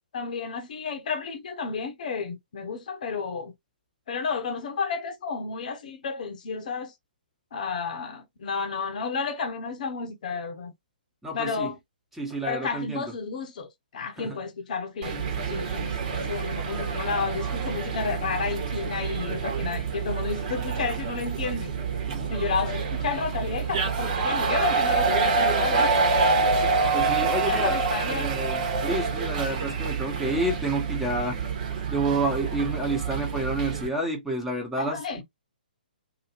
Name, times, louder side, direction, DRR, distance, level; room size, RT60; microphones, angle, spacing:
voice 1, 0.1-3.5 4.1-6.9 7.5-10.7 11.3-11.8 12.5-21.7 22.3-26.0 26.9-28.3 34.8-35.2, left 5 dB, 55° left, 0.8 m, -32 dB
voice 2, 11.2-11.7 12.2-13.0 14.2-14.4 22.1-22.3 26.9-27.8 28.1-31.4 31.9-35.2, right 2 dB, 5° right, 1.1 m, -29 dB
sound 1, 15.0-33.9, right 4 dB, 45° right, 1.3 m, -27 dB
2.8 x 2.8 x 3.0 m
figure-of-eight pair, 130°, 5 cm